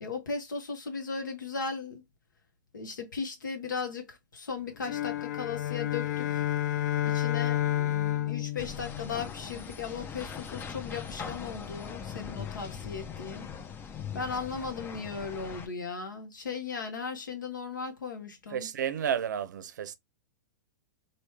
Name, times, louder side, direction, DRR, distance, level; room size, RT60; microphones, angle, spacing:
voice 1, 0.0-2.0 2.7-6.4 7.0-13.5 14.1-18.7, left 5 dB, 80° left, 1.2 m, -37 dB
sound 1, 4.8-9.5, left 12 dB, 65° left, 0.5 m, -30 dB
sound 2, 8.6-15.7, left 7 dB, 20° left, 0.5 m, -41 dB
voice 2, 18.5-19.9, right 9 dB, 70° right, 0.5 m, -31 dB
3.1 x 2.7 x 3.0 m
hypercardioid pair, 105°, 10 cm